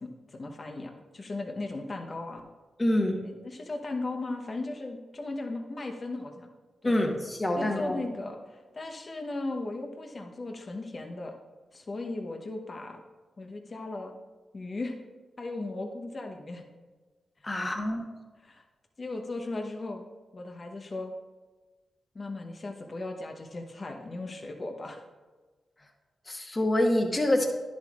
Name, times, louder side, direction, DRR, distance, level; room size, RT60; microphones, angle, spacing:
voice 1, 0.0-2.4 3.2-6.5 6.8-7.0 7.6-11.3 11.7-13.0 13.4-14.1 14.5-14.9 15.4-16.6 17.4-17.8 18.4-18.6 19.0-20.0 20.3-21.1 22.1-25.0, left 2 dB, 45° left, 3 dB, 1.0 m, -37 dB
voice 2, 2.8-3.2 6.8-8.0 17.4-18.0 26.3-27.5, left 1 dB, 30° left, 3 dB, 1.4 m, -26 dB
10.5 x 7.4 x 2.5 m, 1.3 s
supercardioid pair, 45°, 0 cm